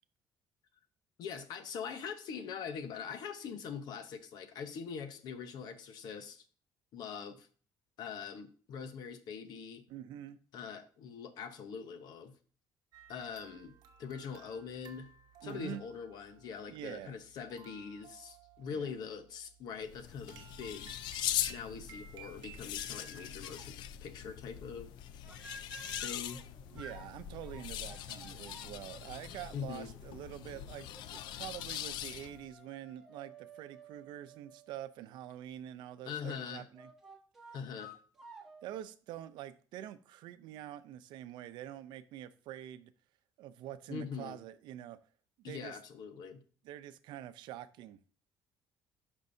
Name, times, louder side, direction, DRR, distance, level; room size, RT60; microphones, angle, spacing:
voice 1, 1.2-6.4 6.9-7.5 8.0-9.8 10.5-12.3 13.1-13.7 14.0-15.1 15.4-21.0 21.5-24.9 26.0-26.4 29.5-29.9 36.0-36.7 37.5-37.9 43.9-44.4 45.4-46.4, left 6 dB, 60° left, 1.0 m, -43 dB
voice 2, 9.9-10.4 15.4-15.8 16.7-17.2 18.7-18.9 26.7-36.9 38.6-42.9 43.4-45.0 45.4-45.8 46.6-48.0, right 12 dB, 80° right, 0.6 m, -46 dB
sound 1, 12.9-22.9, right 7 dB, 60° right, 0.9 m, -57 dB
sound 2, 19.8-32.5, left 11 dB, 80° left, 0.4 m, -41 dB
sound 3, 22.6-23.8 25.2-34.8 36.8-38.8, right 2 dB, 5° right, 1.6 m, -54 dB
12.0 x 5.3 x 2.7 m
cardioid pair, 150°, 8 cm